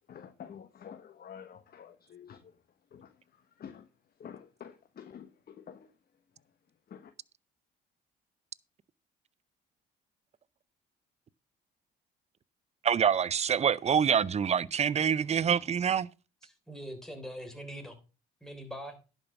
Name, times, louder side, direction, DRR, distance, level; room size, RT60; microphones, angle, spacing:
voice 1, 0.1-2.5 2.9-3.1 3.6-3.9 4.2-5.9 6.9-7.1, left 8 dB, 50° left, 1.0 m, -48 dB
voice 2, 12.8-16.1, right 7 dB, 30° right, 0.5 m, -26 dB
voice 3, 16.4-18.0 18.4-19.0, equal, ahead, 3.5 m, -42 dB
11.0 x 5.3 x 5.9 m
supercardioid pair, 75°, 21 cm